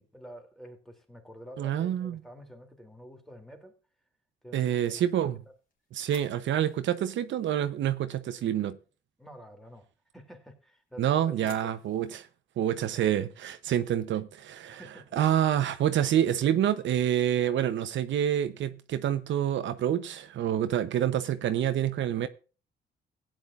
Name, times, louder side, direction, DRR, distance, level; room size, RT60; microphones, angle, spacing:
voice 1, 0.0-3.8 4.4-5.1 5.5-5.6 9.2-9.9 10.1-11.7 14.7-15.2, equal, ahead, 2.9 m, -49 dB
voice 2, 1.6-2.2 4.5-5.4 5.9-8.8 11.0-12.3 12.6-14.8 15.1-22.3, right 10 dB, 70° right, 0.8 m, -27 dB
sound 1, 5.2-8.3 10.7-12.3, left 4 dB, 45° left, 3.2 m, -56 dB
16.5 x 9.2 x 2.5 m
cardioid pair, 90°, 20 cm